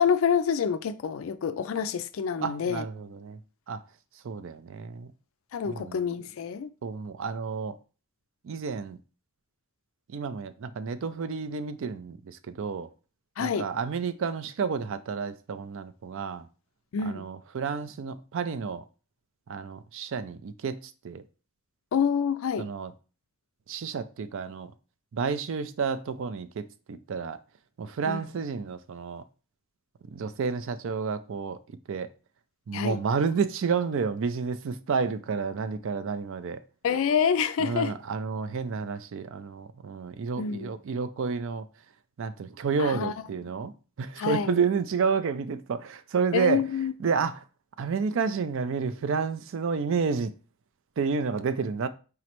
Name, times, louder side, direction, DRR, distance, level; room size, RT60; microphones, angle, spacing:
voice 1, 0.0-2.8 5.5-6.7 13.4-13.7 16.9-17.3 21.9-22.7 28.1-28.3 32.7-33.0 36.8-38.0 40.4-40.7 42.8-43.1 44.2-44.6 46.3-46.9, left 7 dB, 65° left, 0.3 m, -27 dB
voice 2, 2.4-3.4 3.7-3.8 4.2-5.1 5.7-6.0 6.8-7.8 8.4-9.0 10.1-12.9 13.4-16.5 17.0-18.8 19.5-21.2 22.6-22.9 23.7-24.7 25.1-27.4 27.8-29.2 30.1-31.6 31.9-32.1 32.7-36.6 37.6-41.7 42.2-43.7 44.0-46.6 47.0-47.4 47.8-50.3 51.0-51.9, right 5 dB, 60° right, 0.4 m, -30 dB
4.9 x 3.1 x 2.9 m
head